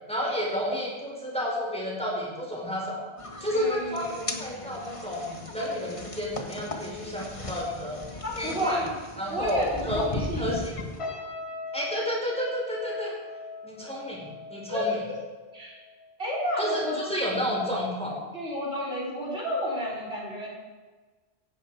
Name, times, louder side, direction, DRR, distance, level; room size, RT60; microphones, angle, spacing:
voice 1, 0.1-3.1 3.4-8.0 8.3-8.8 9.2-10.7 11.7-13.1 13.6-15.0 16.6-18.2, equal, 5° left, -3 dB, 5.2 m, -30 dB
sound 1, 3.2-11.0, left 2 dB, 30° left, 1.5 m, -38 dB
voice 2, 3.5-4.4 8.2-9.0 9.3-10.6 14.7-15.2 15.5-15.8 16.2-17.0 18.3-20.5, equal, 70° right, -4 dB, 5.0 m, -32 dB
sound 2, 11.0-16.3 16.6-16.9, left 3 dB, 70° left, 4.8 m, -40 dB
17.5 x 16.0 x 4.9 m, 1.3 s
omnidirectional pair, 1.1 m